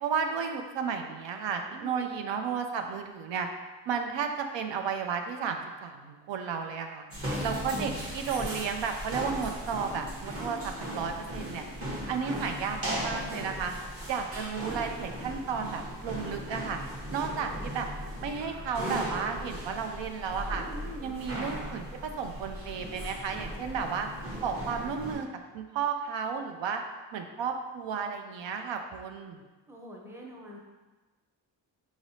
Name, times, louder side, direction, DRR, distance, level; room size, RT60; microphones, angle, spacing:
voice 1, 0.0-3.5 3.9-7.0 7.4-11.7 12.1-13.7 14.1-16.8 17.1-17.9 18.2-20.6 21.0-24.1 24.4-25.3 25.5-26.8 27.1-29.4, right 6 dB, 80° right, 5 dB, 0.5 m, -33 dB
voice 2, 1.7-2.1 7.3-7.9 12.1-12.4 17.1-17.5 20.7-21.1 29.7-30.6, right 1 dB, 5° right, -1 dB, 0.6 m, -46 dB
sound 1, 7.1-25.2, equal, 30° right, 1.1 m, -37 dB
4.8 x 3.2 x 2.7 m, 1.2 s
wide cardioid pair, 100°, 44 cm